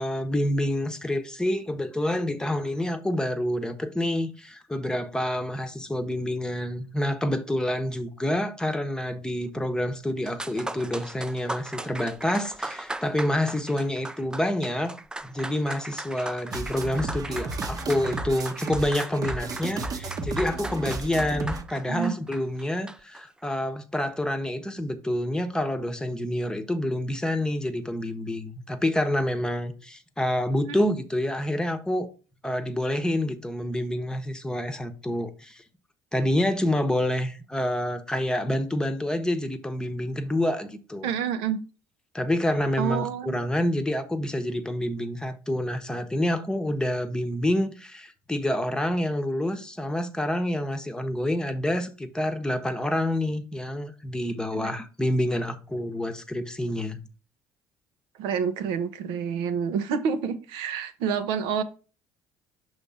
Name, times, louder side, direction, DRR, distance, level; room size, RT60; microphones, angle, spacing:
voice 1, 0.0-15.0 15.2-32.1 32.4-35.6 36.1-41.1 42.1-57.0, left 1 dB, 10° left, 0.9 m, -28 dB
sound 1, 10.3-23.2, right 2 dB, 10° right, 0.4 m, -38 dB
sound 2, 16.5-21.6, right 3 dB, 45° right, 0.9 m, -33 dB
voice 2, 41.0-41.6 42.8-43.5 54.5-54.7 58.2-61.6, right 7 dB, 80° right, 0.7 m, -28 dB
6.0 x 3.2 x 5.5 m
supercardioid pair, 75°, 9 cm